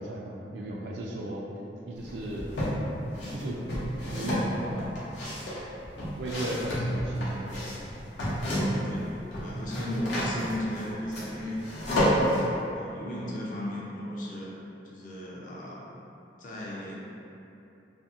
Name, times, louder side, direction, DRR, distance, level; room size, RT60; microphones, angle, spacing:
voice 1, 0.0-1.4 1.9-2.5 3.3-3.6 4.0-4.9 6.1-7.6, right 1 dB, 75° right, -3 dB, 0.3 m, -35 dB
sound 1, 2.0-2.8 3.2-8.9 9.2-12.4, equal, 85° left, 0.7 m, -30 dB
voice 2, 8.5-9.1 9.4-11.6 12.1-14.5 14.8-15.8 16.4-17.0, left 1 dB, 50° left, -5 dB, 0.5 m, -36 dB
2.6 x 2.5 x 2.4 m, 2.8 s
head